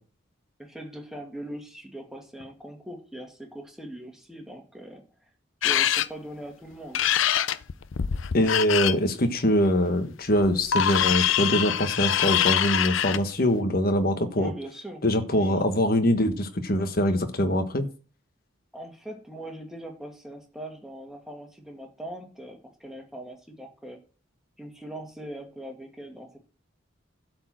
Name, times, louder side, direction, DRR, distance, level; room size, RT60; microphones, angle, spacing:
voice 1, 0.6-5.0 5.6-7.0 14.4-15.6 18.7-24.0 24.6-26.4, right 1 dB, ahead, 1.9 m, -41 dB
sound 1, 5.6-6.1 6.9-8.9 10.4-13.2, left 10 dB, 80° left, 0.5 m, -24 dB
voice 2, 8.3-14.5 15.0-17.9, equal, 50° left, 1.3 m, -23 dB
12.0 x 4.5 x 7.6 m
head